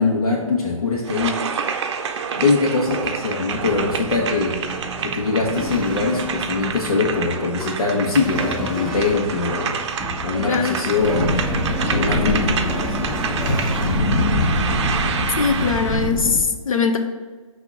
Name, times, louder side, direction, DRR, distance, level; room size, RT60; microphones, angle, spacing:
voice 1, 0.0-1.4 2.3-9.8 10.2-11.5 11.9-13.2, left 4 dB, 85° left, -4 dB, 1.3 m, -22 dB
sound 1, 1.0-16.1, right 6 dB, 50° right, 0.5 m, -28 dB
sound 2, 3.5-14.0, equal, ahead, 0.3 m, -32 dB
voice 2, 10.4-10.7 15.4-17.0, left 5 dB, 70° left, 6 dB, 0.8 m, -21 dB
sound 3, 10.9-16.4, left 1 dB, 50° left, 1.1 m, -23 dB
6.0 x 2.9 x 5.5 m, 1.4 s
hypercardioid pair, 145°, 18 cm